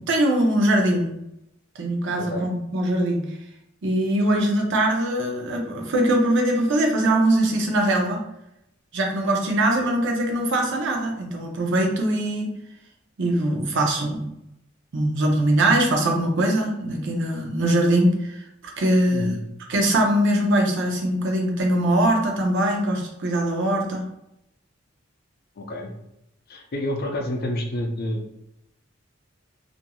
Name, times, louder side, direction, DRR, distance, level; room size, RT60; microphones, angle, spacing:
voice 1, 0.1-1.1 1.8-3.2 3.8-8.2 8.9-12.5 13.2-14.4 14.9-18.4 18.8-19.4 19.7-24.1, right 1 dB, 65° right, 1 dB, 0.6 m, -22 dB
voice 2, 2.2-2.5 9.8-9.9 19.1-19.4 25.6-25.9 26.5-28.3, left 1 dB, 50° left, 2 dB, 0.5 m, -29 dB
2.9 x 2.5 x 2.3 m, 0.82 s
head